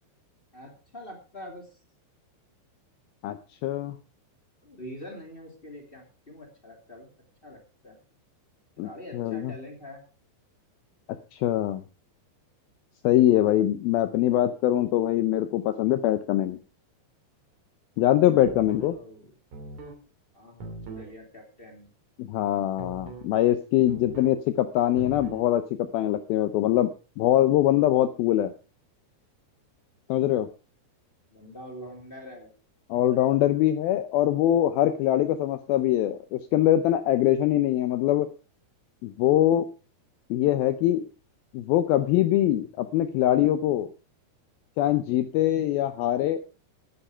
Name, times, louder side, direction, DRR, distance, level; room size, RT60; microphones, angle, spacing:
voice 1, 0.5-1.8 4.6-7.1 7.4-8.0 8.8-10.0 18.8-19.3 20.3-21.9 31.3-32.5, left 1 dB, 15° left, 1 dB, 2.0 m, -44 dB
voice 2, 3.6-4.0 8.8-9.5 11.3-11.8 13.0-16.6 18.0-19.0 22.2-26.9 27.2-28.5 30.1-30.5 32.9-38.3 39.0-39.7 40.3-41.0 41.5-43.9 44.8-46.4, left 13 dB, 85° left, 10 dB, 2.1 m, -23 dB
sound 1, 18.4-18.9 19.5-20.0 20.6-21.1 22.8-23.3 23.9-24.4 25.0-25.5, right 2 dB, 45° right, 3.6 m, -40 dB
11.5 x 9.9 x 5.0 m, 0.34 s
omnidirectional pair, 5.2 m